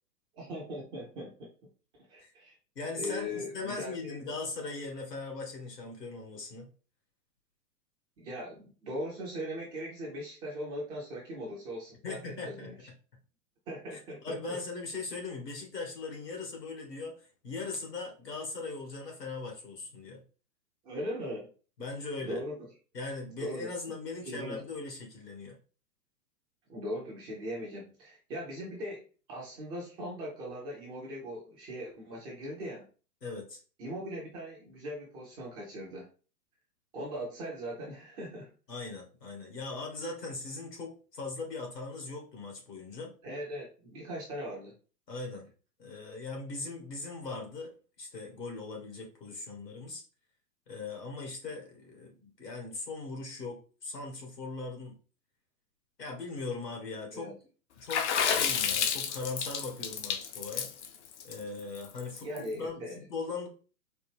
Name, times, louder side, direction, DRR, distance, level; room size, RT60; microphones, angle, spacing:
voice 1, 0.3-1.5 2.1-2.5 2.9-4.3 8.2-12.8 13.7-14.6 20.8-21.5 22.2-22.6 23.4-23.7 24.2-24.6 26.7-32.8 33.8-36.1 36.9-38.5 43.2-44.7 57.1-57.3 62.2-63.0, equal, 10° right, -3 dB, 0.4 m, -39 dB
voice 2, 2.8-6.7 12.0-12.7 13.9-20.2 21.8-22.4 22.9-25.6 33.2-33.6 38.7-43.1 45.1-45.5 45.8-47.7 48.0-50.0 50.7-54.9 56.0-57.3 57.8-60.7 61.2-63.5, left 3 dB, 80° left, 1 dB, 1.8 m, -39 dB
Water / Splash splatter, 57.9-62.4, left 7 dB, 45° left, 0.6 m, -30 dB
4.2 x 2.2 x 3.3 m, 0.37 s
figure-of-eight pair, 110°, 48 cm